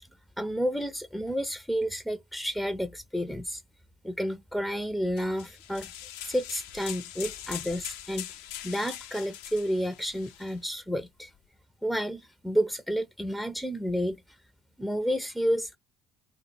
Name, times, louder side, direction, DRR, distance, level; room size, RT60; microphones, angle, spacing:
voice 1, 0.4-3.6 4.0-5.9 6.2-8.3 8.6-11.3 11.8-14.2 14.8-15.8, equal, 5° left, 0.4 m, -30 dB
sound 1, 5.2-10.6, left 11 dB, 70° left, 0.4 m, -42 dB
2.6 x 2.0 x 3.9 m
hypercardioid pair, 60°, 0 cm